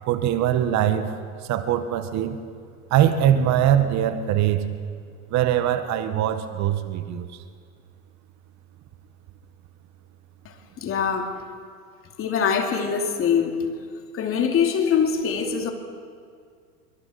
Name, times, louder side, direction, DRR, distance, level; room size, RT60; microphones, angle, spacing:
voice 1, 0.1-1.2 1.4-2.4 2.9-4.7 5.3-7.3, right 10 dB, 40° right, 1.6 m, -22 dB
voice 2, 10.4-11.4 12.2-13.7 14.1-15.7, left 7 dB, 30° left, 2.7 m, -23 dB
25.5 x 23.5 x 4.4 m
hypercardioid pair, 105°, 44 cm